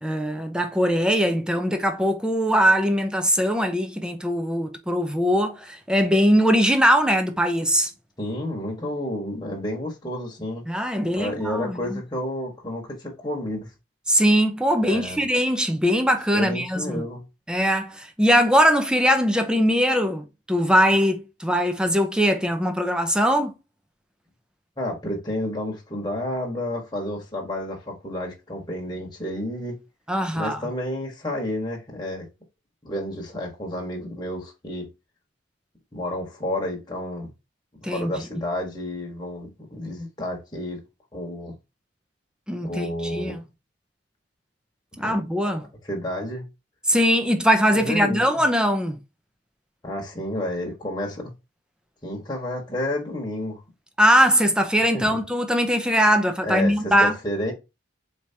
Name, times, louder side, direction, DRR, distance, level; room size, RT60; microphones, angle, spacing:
voice 1, 0.0-7.9 10.7-12.0 14.1-17.1 17.5-23.6 30.1-30.7 37.8-38.2 42.5-43.4 45.0-45.6 46.9-49.0 54.0-57.1, equal, 5° right, 0.5 m, -21 dB
voice 2, 8.2-10.6 11.1-13.7 14.8-15.3 16.3-17.2 24.8-29.8 30.3-32.3 32.8-34.9 35.9-37.3 37.8-40.8 41.1-41.5 42.6-43.4 45.0-45.2 45.8-46.4 47.7-48.2 49.8-51.3 52.0-53.6 54.9-55.1 56.4-57.5, left 1 dB, 20° left, 1.2 m, -30 dB
4.4 x 3.4 x 2.7 m
head